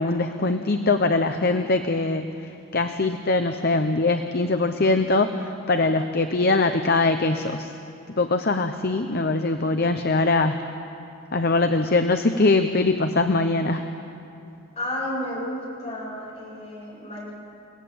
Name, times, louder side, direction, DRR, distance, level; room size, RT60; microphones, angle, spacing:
voice 1, 0.0-7.7 8.2-10.6 11.3-13.9, left 3 dB, 50° left, 7 dB, 0.8 m, -22 dB
voice 2, 14.7-17.3, left 1 dB, 30° left, -5 dB, 8.0 m, -32 dB
29.5 x 17.5 x 8.5 m, 2.7 s
head